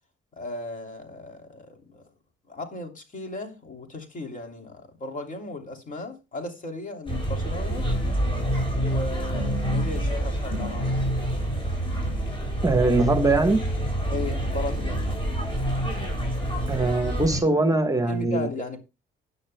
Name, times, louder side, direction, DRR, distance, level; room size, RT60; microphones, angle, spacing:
voice 1, 0.3-2.0 2.5-7.9 8.7-11.0 14.1-15.0 18.1-18.8, left 2 dB, 40° left, 3.0 m, -36 dB
sound 1, 7.1-17.4, right 1 dB, 25° left, 7.1 m, -27 dB
voice 2, 12.6-13.6 16.7-18.5, right 2 dB, 15° right, 1.2 m, -22 dB
17.0 x 10.0 x 2.2 m
cardioid pair, 90°, 20 cm